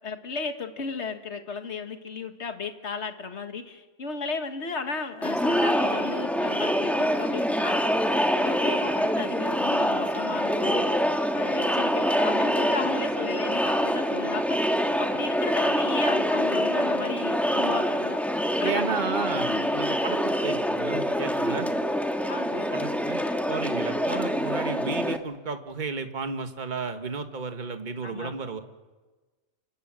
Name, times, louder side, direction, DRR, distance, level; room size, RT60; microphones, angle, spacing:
voice 1, 0.0-18.2 18.6-18.8 19.5-19.7 22.3-22.7 28.0-28.3, left 4 dB, 55° left, 6 dB, 2.0 m, -35 dB
Crowd, 5.2-25.2, equal, ahead, 1.4 m, -25 dB
voice 2, 18.6-21.7 22.7-23.2 23.5-28.6, right 4 dB, 35° right, 7 dB, 1.6 m, -33 dB
27.5 x 19.0 x 7.7 m, 1.3 s
omnidirectional pair, 1.5 m